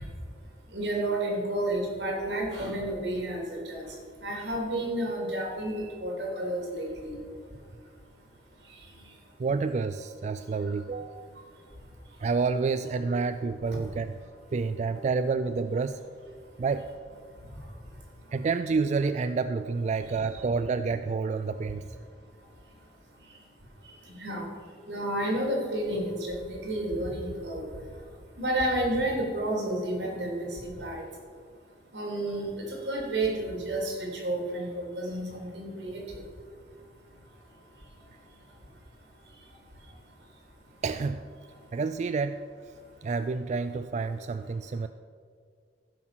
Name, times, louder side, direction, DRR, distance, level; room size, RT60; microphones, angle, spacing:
voice 1, 0.7-3.9 4.2-7.2 24.2-24.4 24.9-27.6 28.4-31.0 31.9-32.5 32.9-36.0, right 1 dB, 85° right, 0 dB, 3.4 m, -31 dB
voice 2, 9.4-11.3 12.2-14.1 14.5-16.0 16.6-16.9 18.3-21.8 40.8-41.3 41.7-42.4 43.0-44.9, right 4 dB, 40° right, 10 dB, 0.3 m, -29 dB
14.5 x 6.1 x 6.1 m, 2.1 s
head